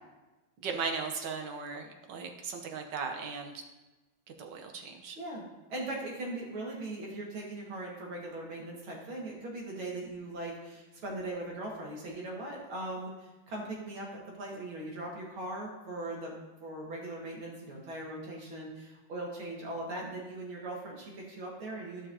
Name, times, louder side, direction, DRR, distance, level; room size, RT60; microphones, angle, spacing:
voice 1, 0.6-3.6 4.4-5.2, right 5 dB, 65° right, 4 dB, 1.5 m, -37 dB
voice 2, 5.2-16.3 16.6-22.1, right 2 dB, 85° right, -2 dB, 2.7 m, -40 dB
13.5 x 5.5 x 2.8 m, 1.1 s
omnidirectional pair, 2.2 m